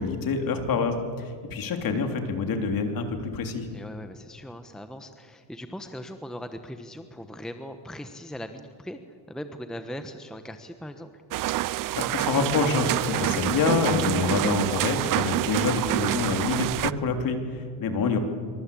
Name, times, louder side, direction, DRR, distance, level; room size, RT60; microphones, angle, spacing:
voice 1, 0.0-3.7 11.9-18.2, left 4 dB, 45° left, 5 dB, 3.4 m, -26 dB
voice 2, 3.7-11.2 12.9-13.2 18.1-18.2, equal, ahead, 8 dB, 1.1 m, -39 dB
sound 1, 11.3-16.9, right 16 dB, 45° right, 0.6 m, -27 dB
25.0 x 24.0 x 8.6 m, 2.1 s
cardioid pair, 135°, 48 cm